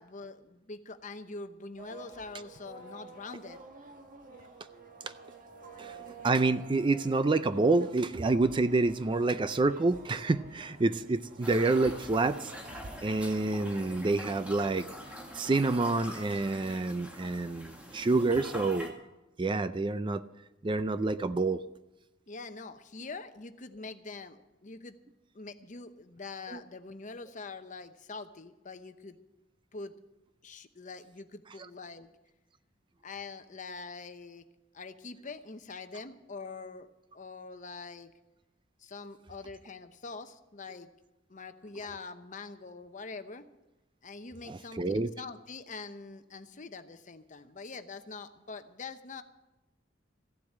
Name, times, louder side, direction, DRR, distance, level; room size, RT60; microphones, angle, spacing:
voice 1, 0.0-3.6 22.3-25.0 25.3-29.2 29.7-29.9 30.4-32.1 33.0-34.4 34.7-36.9 37.1-38.1 38.8-40.9 41.3-43.4 44.0-49.2, left 4 dB, 40° left, 10 dB, 0.9 m, -44 dB
sound 1, 1.8-12.9, right 3 dB, 45° right, 1.5 m, -50 dB
voice 2, 6.2-12.5 13.0-14.9 15.3-18.9 19.4-20.2 20.6-21.6 26.5-26.6 44.5-45.1, right 3 dB, 25° right, 13 dB, 0.4 m, -28 dB
sound 2, 11.4-18.9, equal, 5° right, 2.0 m, -44 dB
15.0 x 7.7 x 9.8 m, 0.99 s
head